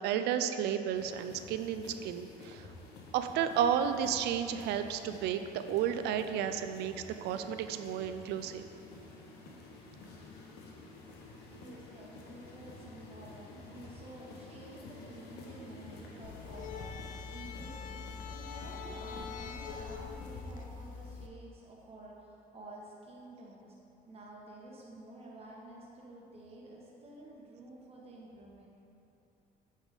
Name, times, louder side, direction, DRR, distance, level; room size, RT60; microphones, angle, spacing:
voice 1, 0.0-2.6 3.1-6.9 7.2-8.6, right 9 dB, 80° right, 9 dB, 0.4 m, -32 dB
sound 1, 0.9-20.4, left 2 dB, 75° left, 1.0 m, -51 dB
voice 2, 11.5-23.7 24.1-28.7, right 1 dB, 35° right, -4 dB, 1.2 m, -51 dB
sound 2, 16.2-21.3, left 5 dB, 50° left, 0.5 m, -43 dB
8.2 x 3.6 x 5.0 m, 2.8 s
cardioid pair, 110°, 17 cm